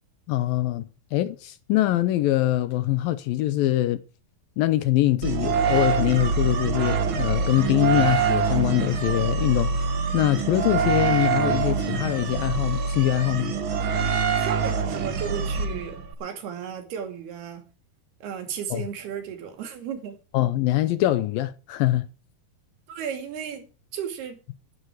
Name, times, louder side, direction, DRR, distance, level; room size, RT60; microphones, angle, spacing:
voice 1, 0.3-4.0 4.6-13.6 18.7-18.8 20.3-22.1, left 15 dB, 75° left, 2.4 m, -23 dB
sound 1, 5.2-16.1, right 5 dB, 65° right, 1.3 m, -25 dB
voice 2, 14.4-17.6 18.2-20.2 22.9-23.7 23.9-24.4, right 8 dB, 80° right, 4.5 m, -34 dB
14.0 x 11.5 x 4.8 m
omnidirectional pair, 4.5 m